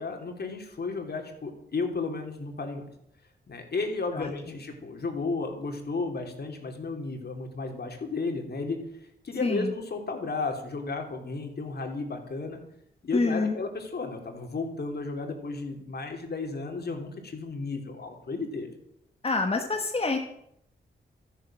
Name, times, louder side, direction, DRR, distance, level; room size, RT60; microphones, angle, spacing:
voice 1, 0.0-2.8 3.5-8.8 9.2-12.6 13.0-18.7, left 3 dB, 60° left, 4 dB, 3.3 m, -33 dB
voice 2, 4.1-4.6 9.4-9.7 13.1-13.6 19.2-20.2, left 3 dB, 30° left, 3 dB, 1.5 m, -27 dB
13.5 x 10.5 x 7.6 m, 0.74 s
wide cardioid pair, 105°, 19 cm